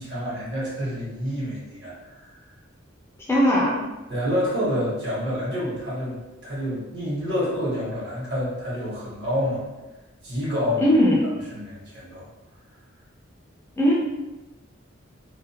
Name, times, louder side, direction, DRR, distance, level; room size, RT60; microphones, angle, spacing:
voice 1, 0.0-2.3 4.1-9.6 10.2-10.9 11.5-12.3, equal, 55° right, -7 dB, 1.1 m, -28 dB
voice 2, 3.3-3.9 10.8-11.3 13.8-13.9, equal, 10° left, -5 dB, 0.3 m, -19 dB
2.4 x 2.1 x 2.7 m, 1.1 s
head